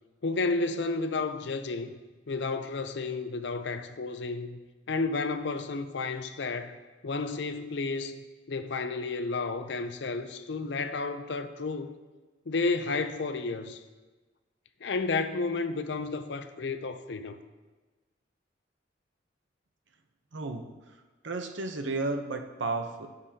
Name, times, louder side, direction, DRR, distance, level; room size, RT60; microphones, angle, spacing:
voice 1, 0.2-1.9 2.3-4.6 4.9-6.8 7.0-11.9 12.5-13.8 14.8-17.4, left 3 dB, 65° left, 0.6 m, -32 dB
voice 2, 20.3-20.7 21.2-23.1, right 3 dB, 85° right, 0.8 m, -32 dB
15.0 x 5.4 x 2.8 m
head